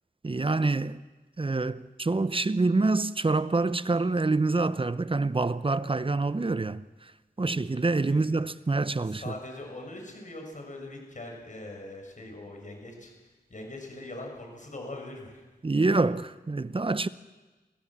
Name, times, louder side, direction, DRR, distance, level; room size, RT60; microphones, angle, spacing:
voice 1, 0.2-1.0 1.4-6.8 7.4-9.2 15.6-17.1, right 3 dB, 30° right, 0.8 m, -26 dB
voice 2, 8.0-8.3 9.0-15.4, left 2 dB, 50° left, 6.6 m, -42 dB
27.0 x 15.5 x 7.5 m
cardioid pair, 55°, 17 cm